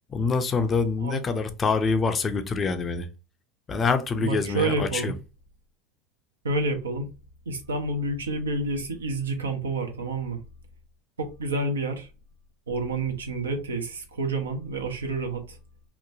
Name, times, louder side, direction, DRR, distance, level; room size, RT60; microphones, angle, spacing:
voice 1, 0.1-3.1 3.7-5.1, left 4 dB, 30° left, 0.5 m, -25 dB
voice 2, 4.2-5.1 6.4-7.1 7.5-10.4 11.2-12.1 12.7-15.6, right 2 dB, 90° right, 0.6 m, -29 dB
3.0 x 2.1 x 2.5 m
hypercardioid pair, 80°, 0 cm